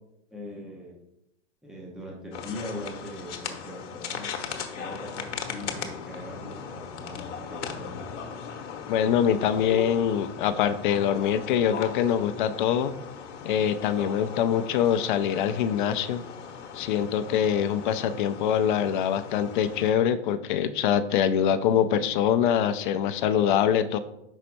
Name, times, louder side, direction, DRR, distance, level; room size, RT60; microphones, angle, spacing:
voice 1, 0.3-1.0 1.6-4.3 4.7-8.1, left 1 dB, ahead, -2 dB, 0.7 m, -40 dB
sound 1, 2.3-19.9, left 6 dB, 65° left, 1.0 m, -38 dB
voice 2, 8.9-13.0 13.4-16.2 16.7-24.0, left 9 dB, 40° left, 12 dB, 0.5 m, -24 dB
5.4 x 4.1 x 4.4 m, 0.85 s
hypercardioid pair, 125°, 37 cm